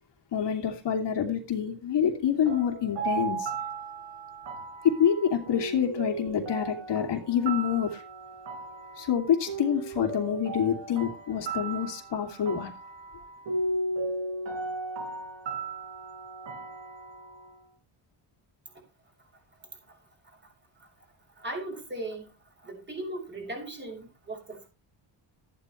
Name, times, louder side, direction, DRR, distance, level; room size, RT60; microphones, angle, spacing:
voice 1, 0.3-3.5 4.8-8.0 9.0-12.7, left 8 dB, 65° left, 2.7 m, -27 dB
sound 1, 2.4-17.5, right 3 dB, 70° right, 5.3 m, -36 dB
voice 2, 21.4-22.3 22.6-24.7, right 1 dB, 25° right, 6.8 m, -38 dB
14.5 x 11.5 x 3.2 m
cardioid pair, 135°, 46 cm